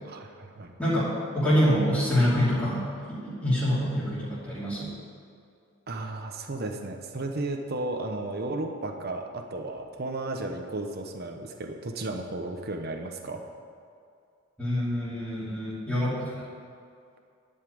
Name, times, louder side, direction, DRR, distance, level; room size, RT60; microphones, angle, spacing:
voice 1, 0.0-0.7 5.9-13.4, right 2 dB, 45° right, 3 dB, 0.9 m, -34 dB
voice 2, 0.8-4.9 14.6-16.4, equal, 5° left, -12 dB, 2.8 m, -26 dB
11.0 x 5.7 x 8.5 m, 2.4 s
head